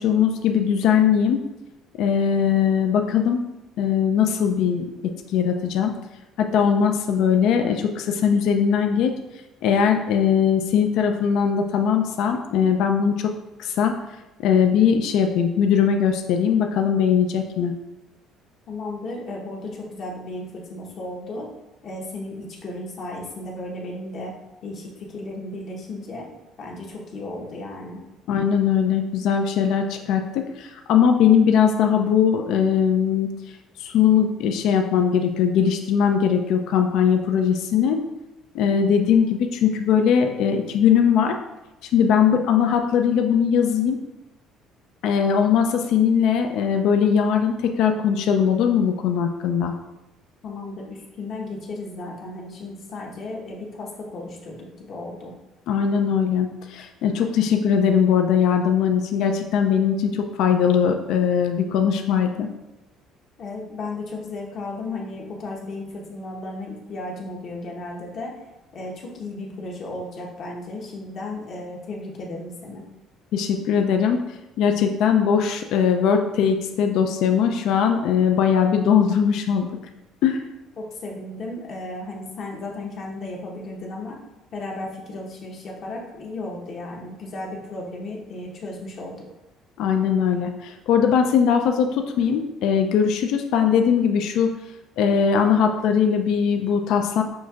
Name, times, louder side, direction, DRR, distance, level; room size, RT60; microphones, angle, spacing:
voice 1, 0.0-1.4 2.0-3.4 3.8-5.9 6.4-9.1 9.6-13.3 13.6-14.0 14.4-17.7 28.3-33.3 33.8-38.0 38.5-41.3 41.8-44.0 45.0-49.7 55.7-62.5 73.3-74.2 74.6-79.7 80.2-80.4 89.8-94.6 95.0-97.2, left 7 dB, 75° left, 5 dB, 0.3 m, -20 dB
voice 2, 18.7-21.5 21.8-24.3 24.6-26.3 26.6-28.0 50.4-55.3 63.4-68.3 68.7-72.9 80.8-84.2 84.5-89.2, left 2 dB, 50° left, -1 dB, 1.0 m, -34 dB
6.1 x 2.6 x 2.4 m, 1.0 s
cardioid pair, 105°, 0 cm